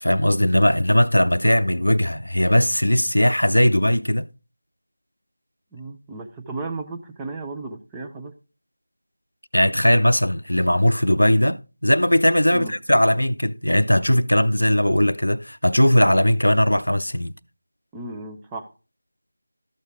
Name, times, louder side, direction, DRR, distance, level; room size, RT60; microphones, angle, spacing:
voice 1, 0.0-4.3 9.5-17.3, left 1 dB, 80° left, 0.6 m, -19 dB
voice 2, 5.7-8.3 12.5-12.7 17.9-18.7, right 2 dB, 5° right, 0.5 m, -34 dB
12.5 x 6.5 x 3.5 m
figure-of-eight pair, 165°, 0 cm